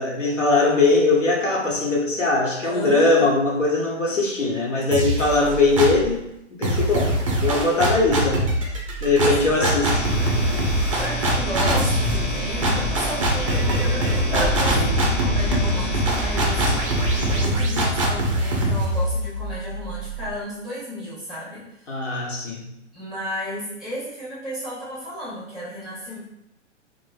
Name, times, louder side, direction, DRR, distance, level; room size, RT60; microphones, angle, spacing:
voice 1, 0.0-6.2 6.6-8.5 9.0-9.8 14.7-14.9 21.9-22.7, left 3 dB, 85° left, -2 dB, 0.9 m, -21 dB
voice 2, 2.6-3.3 9.2-9.7 11.0-16.8 17.4-22.0 22.9-26.2, left 1 dB, ahead, -9 dB, 0.8 m, -33 dB
sound 1, 4.9-6.1 6.6-20.3, right 1 dB, 30° right, 0.3 m, -23 dB
sound 2, 9.9-17.4, equal, 30° left, 0.8 m, -27 dB
3.2 x 2.1 x 2.3 m, 0.83 s
figure-of-eight pair, 125°, 37 cm